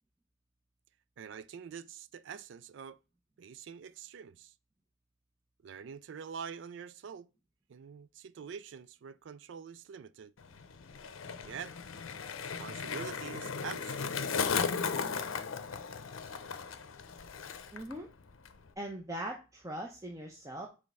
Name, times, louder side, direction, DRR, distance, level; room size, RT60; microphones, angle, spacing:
voice 1, 1.2-3.0 3.4-4.5 5.6-7.3 7.7-10.3 11.4-11.8 12.4-14.2, right 7 dB, 65° right, 0.3 m, -45 dB
Skateboard, 10.4-17.9 18.2-18.7, left 6 dB, 90° left, 0.7 m, -36 dB
voice 2, 17.7-18.1 18.8-20.7, right 1 dB, 15° right, 0.7 m, -40 dB
5.2 x 3.4 x 5.4 m
head